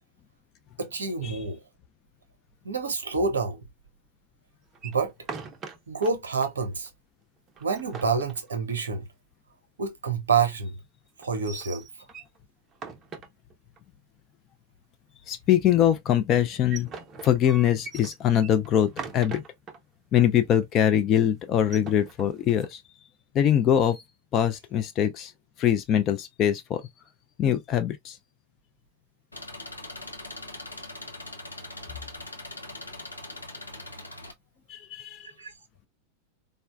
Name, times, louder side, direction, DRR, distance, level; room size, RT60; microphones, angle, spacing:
voice 1, 0.8-1.6 2.6-3.6 4.8-5.1 5.9-6.9 7.6-9.0 9.8-10.7 11.2-11.9 35.4-35.5, right 5 dB, 70° right, 0.7 m, -27 dB
sound 1, 4.7-6.1 6.4-6.5 6.9-7.0 7.5-9.0 11.2-12.4 12.7-13.8 16.4-19.8 20.2-20.3 20.6-20.9 21.5-22.7, right 5 dB, 30° right, 0.5 m, -41 dB
voice 2, 15.3-16.9 17.2-19.4 20.1-22.8 23.3-24.0 24.3-25.3 25.6-26.8 27.4-28.2 34.7-35.3, left 10 dB, 30° left, 0.3 m, -23 dB
Engine, 29.3-34.3, left 2 dB, 85° left, 0.5 m, -41 dB
3.7 x 2.1 x 2.3 m
figure-of-eight pair, 90°, 0 cm